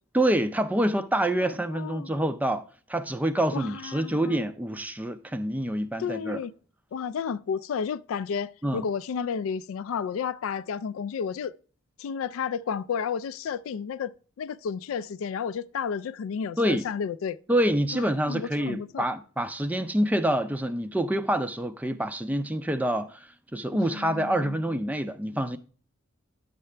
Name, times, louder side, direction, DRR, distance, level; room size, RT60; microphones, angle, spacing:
voice 1, 0.1-6.4 8.6-8.9 16.6-16.9 17.5-25.6, right 1 dB, 5° right, 0.4 m, -27 dB
voice 2, 1.4-2.1 3.5-4.4 6.0-6.5 6.9-11.5 12.0-14.1 14.4-17.4 18.2-19.1 23.7-24.6, left 6 dB, 70° left, 0.3 m, -32 dB
10.0 x 6.7 x 3.2 m
head